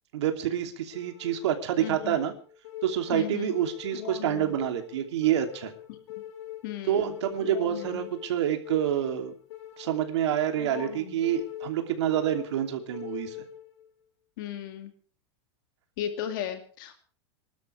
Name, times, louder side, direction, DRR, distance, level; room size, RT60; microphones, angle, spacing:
voice 1, 0.1-2.3 2.8-5.7 6.9-9.3 9.8-13.4, right 10 dB, 85° right, 5 dB, 3.0 m, -27 dB
sound 1, 0.9-13.9, left 11 dB, 85° left, 3.5 m, -42 dB
voice 2, 1.8-2.2 3.1-3.5 5.9-6.0 6.6-7.1 14.4-14.9 16.0-17.0, left 10 dB, 50° left, 7 dB, 2.3 m, -35 dB
27.5 x 12.5 x 3.4 m, 0.42 s
supercardioid pair, 175°, 14 cm